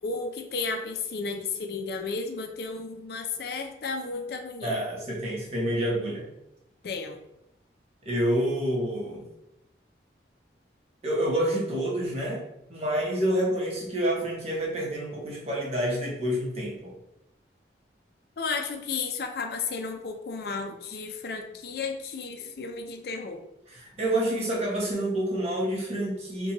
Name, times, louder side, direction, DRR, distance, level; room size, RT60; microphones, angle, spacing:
voice 1, 0.0-4.8 6.8-7.2 18.4-23.4, left 4 dB, 55° left, 3 dB, 0.4 m, -33 dB
voice 2, 4.6-6.3 8.0-9.3 11.0-12.4 12.7-16.9 23.7-26.5, right 1 dB, 35° right, -2 dB, 0.8 m, -28 dB
4.1 x 2.2 x 2.9 m, 0.86 s
head